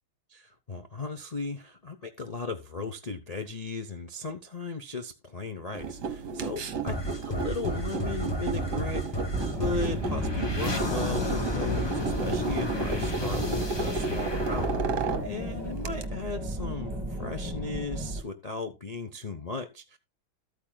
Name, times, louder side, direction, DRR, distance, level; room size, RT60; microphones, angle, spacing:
voice 1, 0.3-20.0, left 3 dB, 85° left, 0.3 m, -36 dB
sound 1, 5.7-16.1, right 4 dB, 60° right, 1.6 m, -33 dB
sound 2, 6.9-16.2, equal, 20° left, 0.8 m, -33 dB
sound 3, 9.3-18.2, equal, 10° right, 3.9 m, -34 dB
13.5 x 8.9 x 2.3 m
omnidirectional pair, 2.2 m